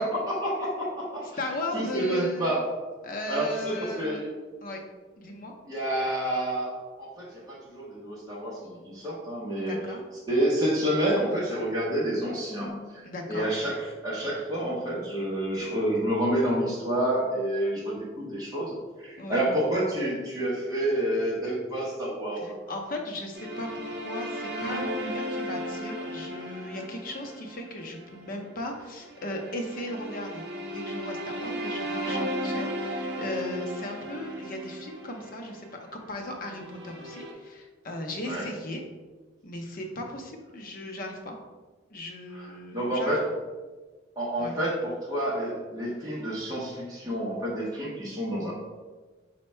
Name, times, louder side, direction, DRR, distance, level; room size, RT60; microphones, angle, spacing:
voice 1, 0.0-1.3 1.7-2.6 3.3-4.3 5.7-6.7 7.0-9.8 10.3-13.0 13.3-22.6 38.2-38.5 42.4-43.3 44.2-48.5, right 1 dB, 20° right, -7 dB, 0.7 m, -29 dB
voice 2, 1.4-2.5 3.0-4.2 4.6-4.8 5.2-5.5 9.6-10.0 13.0-13.5 19.2-19.4 22.4-30.5 30.7-38.8 39.4-41.4 41.9-43.2 44.4-44.6, left 1 dB, 45° left, 2 dB, 0.5 m, -37 dB
sound 1, 23.3-37.3, equal, 60° right, 0.6 m, -35 dB
4.4 x 2.1 x 4.3 m, 1.3 s
head